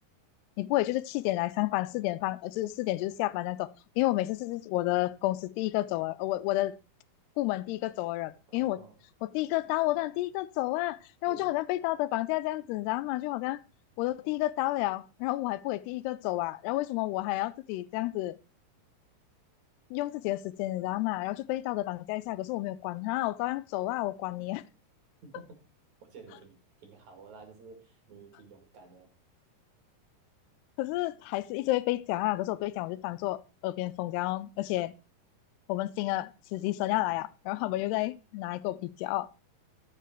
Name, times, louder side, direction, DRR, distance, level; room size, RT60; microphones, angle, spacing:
voice 1, 0.6-3.7 4.0-6.7 7.4-8.8 9.2-13.6 14.0-18.4 19.9-24.6 30.8-34.9 35.7-39.3, left 17 dB, 85° left, 2.7 m, -31 dB
voice 2, 8.5-9.0 11.3-11.6 25.2-25.6 26.0-29.1, right 4 dB, 50° right, 2.9 m, -51 dB
13.0 x 6.0 x 4.5 m
omnidirectional pair, 4.6 m